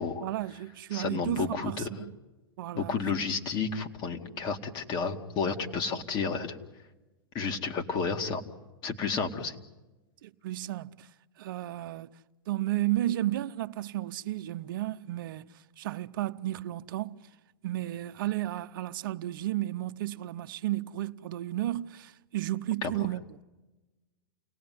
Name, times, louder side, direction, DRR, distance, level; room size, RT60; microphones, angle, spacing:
voice 1, 0.2-2.2 2.6-3.0 5.9-6.0 10.2-11.1 11.4-12.1 12.5-17.2 17.6-23.4, right 14 dB, 65° right, 0.9 m, -33 dB
voice 2, 0.9-1.9 2.8-6.6 7.3-8.4 8.8-9.6 22.8-22.9, left 5 dB, 35° left, 2.4 m, -31 dB
30.0 x 19.0 x 9.6 m
hypercardioid pair, 110°, 12 cm